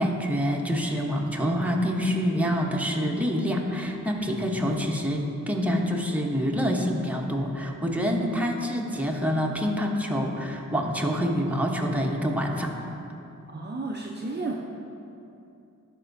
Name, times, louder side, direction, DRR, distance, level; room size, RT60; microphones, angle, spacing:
voice 1, 0.0-12.7, equal, 5° right, 0 dB, 1.0 m, -26 dB
voice 2, 13.5-14.5, right 3 dB, 30° right, -2 dB, 0.6 m, -32 dB
12.5 x 5.2 x 2.7 m, 2.7 s
cardioid pair, 45°, 32 cm